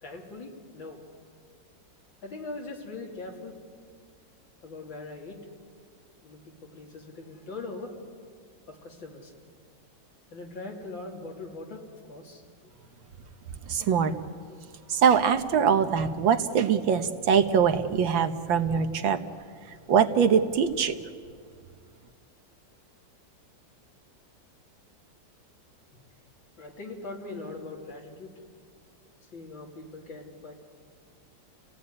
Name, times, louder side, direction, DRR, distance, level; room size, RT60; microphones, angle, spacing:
voice 1, 0.0-1.1 2.2-3.6 4.6-5.5 6.2-8.0 8.7-9.3 10.3-12.7 25.9-26.0 26.6-28.3 29.2-30.5, left 3 dB, 90° left, 0 dB, 3.8 m, -41 dB
voice 2, 13.7-14.2 14.9-19.2 19.9-21.0, right 7 dB, 85° right, 8 dB, 1.9 m, -23 dB
30.0 x 17.0 x 9.7 m, 2.1 s
omnidirectional pair, 2.0 m